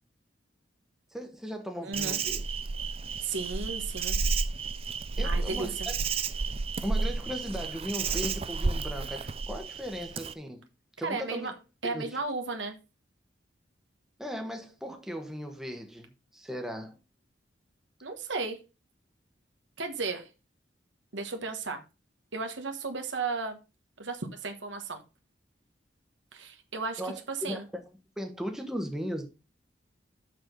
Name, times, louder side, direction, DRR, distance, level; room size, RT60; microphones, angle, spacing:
voice 1, 1.1-2.4 5.2-5.9 6.8-10.6 11.0-11.5 11.8-12.2 14.2-17.0 27.0-27.6 28.2-29.3, equal, 5° right, 1.0 m, -37 dB
voice 2, 1.8-2.2 3.2-4.2 5.2-5.9 11.0-11.5 11.8-12.8 18.0-18.6 19.8-20.3 21.1-21.8 22.3-23.6 24.0-25.0 26.3-27.6, right 4 dB, 85° right, 1.3 m, -34 dB
Insect, 1.9-10.3, right 4 dB, 30° right, 0.4 m, -31 dB
6.5 x 6.2 x 5.2 m
head